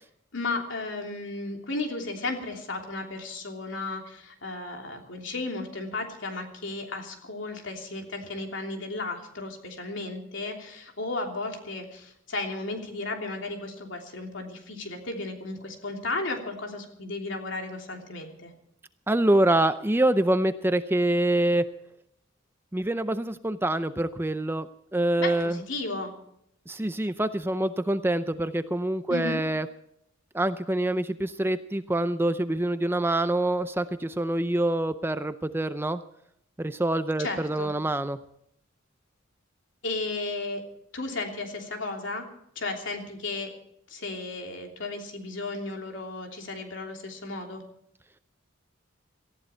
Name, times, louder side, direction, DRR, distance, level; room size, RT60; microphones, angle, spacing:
voice 1, 0.3-18.5 25.2-26.1 29.1-29.4 37.2-37.7 39.8-40.6 40.9-42.2 42.5-43.5 43.9-47.6, left 3 dB, 65° left, 3 dB, 3.1 m, -34 dB
voice 2, 19.1-21.7 22.7-24.7 24.9-25.6 26.7-29.7 30.3-36.0 36.6-38.2, right 1 dB, 10° right, 11 dB, 0.5 m, -25 dB
19.0 x 14.5 x 4.5 m, 0.75 s
head